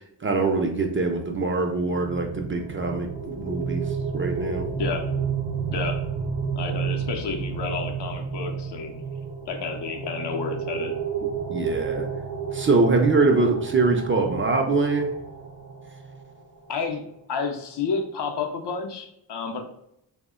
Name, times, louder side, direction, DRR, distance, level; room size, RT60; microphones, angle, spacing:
voice 1, 0.0-3.8 4.1-4.7 11.5-12.1 12.5-15.1, right 3 dB, 30° right, 3 dB, 0.4 m, -23 dB
sound 1, 1.6-16.3, right 6 dB, 65° right, 0.7 m, -31 dB
voice 2, 5.7-6.0 6.6-8.9 9.5-10.9 16.7-17.0 17.3-19.6, left 5 dB, 70° left, 4 dB, 0.6 m, -30 dB
2.1 x 2.1 x 3.5 m, 0.77 s
cardioid pair, 65°, 43 cm